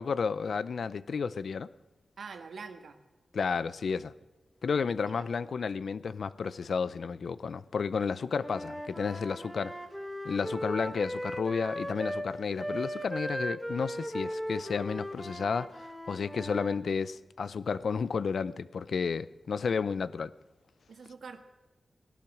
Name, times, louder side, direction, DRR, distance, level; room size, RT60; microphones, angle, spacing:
voice 1, 0.0-1.7 3.3-4.1 4.6-9.7 10.2-20.3, left 5 dB, 80° left, 0.6 m, -32 dB
voice 2, 2.2-3.0 5.1-5.3 20.9-21.4, right 5 dB, 85° right, 1.6 m, -44 dB
Wind instrument woodwind instrument, 8.4-12.3 12.6-16.8, equal, ahead, 1.4 m, -37 dB
18.0 x 12.0 x 6.1 m
wide cardioid pair, 100°, 0 cm